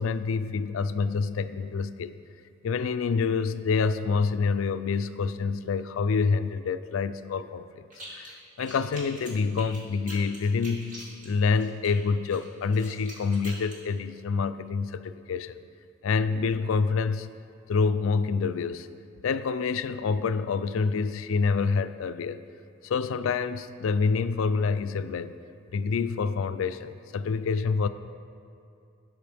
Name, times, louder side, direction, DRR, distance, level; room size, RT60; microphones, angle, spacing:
voice 1, 0.0-2.2 2.6-7.8 8.1-11.0 11.2-15.6 16.0-17.3 17.7-18.9 19.2-22.4 22.8-25.4 25.7-27.9, left 5 dB, 80° left, 12 dB, 0.4 m, -27 dB
sound 1, 7.9-8.3 8.6-11.9 12.3-13.8, right 1 dB, 40° right, 2.4 m, -44 dB
15.5 x 6.2 x 3.4 m, 2.6 s
head